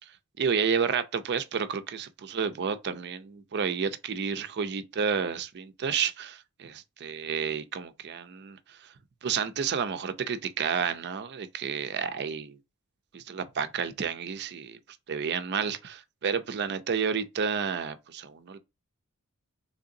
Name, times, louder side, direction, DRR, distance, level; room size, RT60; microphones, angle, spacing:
voice 1, 0.4-8.6 9.2-12.6 13.1-14.8 15.1-18.6, right 6 dB, 50° right, 0.5 m, -30 dB
3.8 x 3.2 x 2.6 m
head